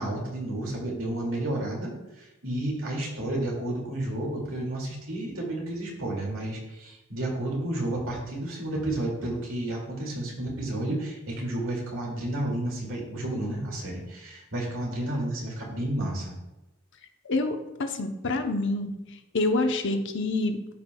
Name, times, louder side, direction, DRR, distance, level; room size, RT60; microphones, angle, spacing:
voice 1, 0.0-16.4, right 1 dB, 70° right, -2 dB, 2.4 m, -31 dB
voice 2, 17.3-18.9 19.3-20.6, left 2 dB, 60° left, 6 dB, 0.8 m, -27 dB
13.0 x 5.2 x 2.3 m, 0.97 s
head